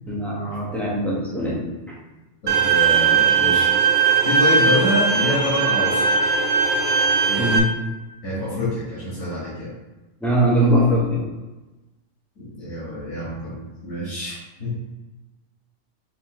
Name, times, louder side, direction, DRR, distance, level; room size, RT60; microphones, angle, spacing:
voice 1, 0.1-1.7 7.4-7.7 10.2-11.3, equal, ahead, -6 dB, 1.0 m, -21 dB
voice 2, 2.4-3.7 4.2-6.2 7.2-7.6 8.2-9.7 12.4-14.7, left 1 dB, 65° left, -9 dB, 2.1 m, -27 dB
Bowed string instrument, 2.5-7.6, right 5 dB, 80° right, 1.0 m, -19 dB
5.5 x 3.2 x 3.0 m, 1.1 s
omnidirectional pair, 1.3 m